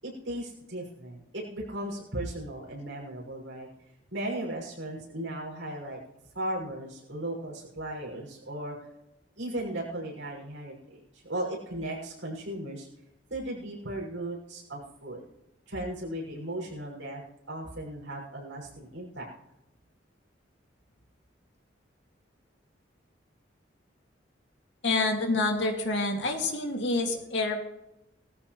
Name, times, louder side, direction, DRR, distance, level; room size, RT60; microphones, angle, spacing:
voice 1, 0.0-3.7 4.1-6.0 6.3-8.8 9.4-12.9 13.3-15.2 15.7-17.2 17.5-19.3, right 1 dB, 85° right, -3 dB, 6.3 m, -36 dB
voice 2, 24.8-27.6, left 2 dB, 70° left, 2 dB, 2.4 m, -27 dB
19.0 x 14.0 x 3.2 m, 0.88 s
head